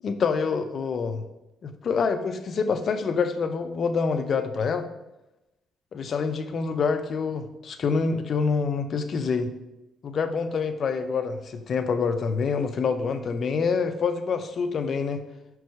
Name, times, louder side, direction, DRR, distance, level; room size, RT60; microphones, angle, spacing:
voice 1, 0.0-1.2 1.6-4.8 5.9-9.5 10.0-15.2, left 5 dB, 55° left, 8 dB, 0.5 m, -26 dB
5.1 x 4.7 x 4.7 m, 0.95 s
cardioid pair, 80°, 0 cm